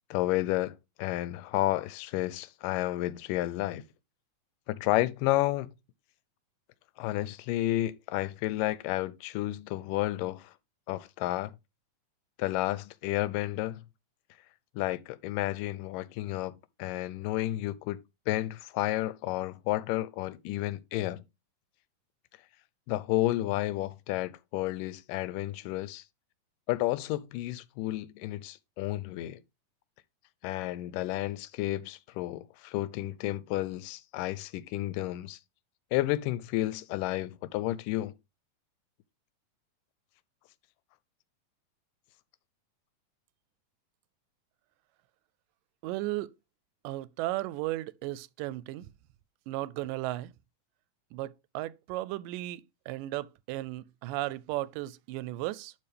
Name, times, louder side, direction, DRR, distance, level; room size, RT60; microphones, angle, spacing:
voice 1, 0.1-3.8 4.7-5.7 7.0-10.5 10.9-11.6 12.4-13.8 14.8-18.0 18.3-21.2 22.9-26.0 26.7-29.4 30.4-35.4 35.9-38.1, left 16 dB, 90° left, 2.2 m, -31 dB
voice 2, 45.8-46.3 46.8-48.9 49.5-50.3 51.1-55.7, right 17 dB, 90° right, 2.2 m, -35 dB
11.0 x 4.1 x 3.3 m
omnidirectional pair, 3.7 m